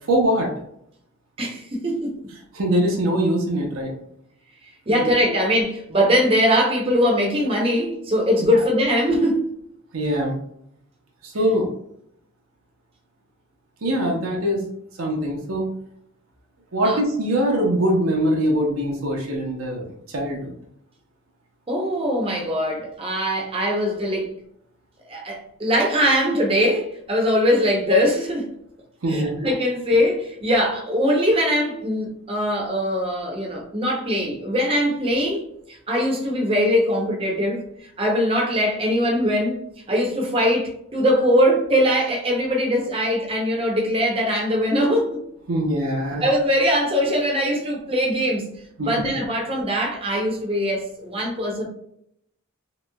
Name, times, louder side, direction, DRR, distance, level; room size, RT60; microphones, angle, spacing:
voice 1, 0.1-0.5 2.5-3.9 4.9-5.1 9.9-10.3 11.2-11.7 13.8-14.7 15.0-15.7 16.7-20.5 29.0-29.4 45.5-46.2 48.8-49.1, equal, 85° right, -1 dB, 0.7 m, -22 dB
voice 2, 1.4-2.2 4.9-9.5 16.8-17.0 21.7-24.3 25.1-28.5 29.1-37.6 38.0-39.6 39.9-45.2 46.2-48.5 48.8-51.6, equal, 25° right, -1 dB, 0.6 m, -21 dB
3.0 x 3.0 x 2.2 m, 0.72 s
head